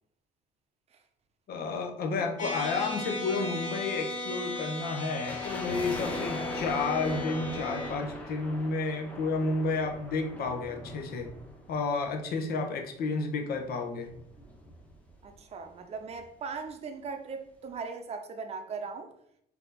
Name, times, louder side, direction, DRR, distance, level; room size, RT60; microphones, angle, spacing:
voice 1, 1.5-11.3 11.7-14.1, left 3 dB, 65° left, 0.9 m, -31 dB
sound 1, 2.4-7.9, left 2 dB, 45° left, 1.8 m, -36 dB
sound 2, 5.2-12.5 12.8-12.9 13.5-15.4 15.6-15.7 15.9-16.2 16.7-16.8, left 1 dB, 10° left, 0.9 m, -42 dB
voice 2, 15.2-19.1, right 5 dB, 40° right, 0.6 m, -39 dB
4.4 x 2.9 x 3.9 m
cardioid pair, 110°, 17 cm